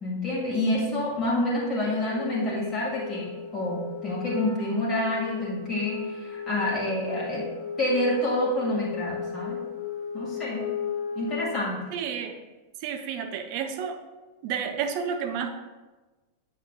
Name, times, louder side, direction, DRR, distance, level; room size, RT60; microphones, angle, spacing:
voice 1, 0.0-7.4 7.8-9.6 10.1-10.7 11.2-11.8, left 1 dB, 25° left, -6 dB, 1.9 m, -28 dB
Wind instrument woodwind instrument, 1.8-11.6, left 6 dB, 50° left, 1.3 m, -35 dB
voice 2, 11.9-12.4 12.8-14.0 14.4-15.5, right 7 dB, 45° right, 6 dB, 0.6 m, -31 dB
8.3 x 6.6 x 2.3 m, 1.2 s
figure-of-eight pair, 90°, 0 cm